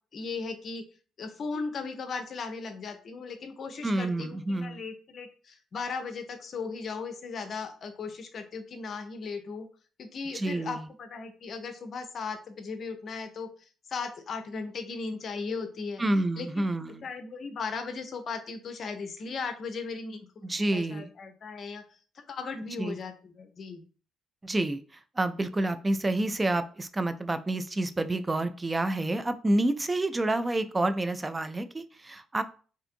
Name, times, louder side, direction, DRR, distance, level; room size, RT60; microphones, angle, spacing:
voice 1, 0.1-0.8 1.2-9.7 10.0-13.5 13.9-16.0 16.4-16.7 17.0-20.2 20.7-21.8 22.2-23.8, left 4 dB, 55° left, 7 dB, 0.5 m, -37 dB
voice 2, 3.8-4.8 10.3-10.9 16.0-17.1 20.4-21.1 22.8-23.0 24.4-24.8 25.2-32.4, right 2 dB, 25° right, 11 dB, 0.3 m, -28 dB
2.6 x 2.5 x 2.5 m, 0.40 s
hypercardioid pair, 50°, 0 cm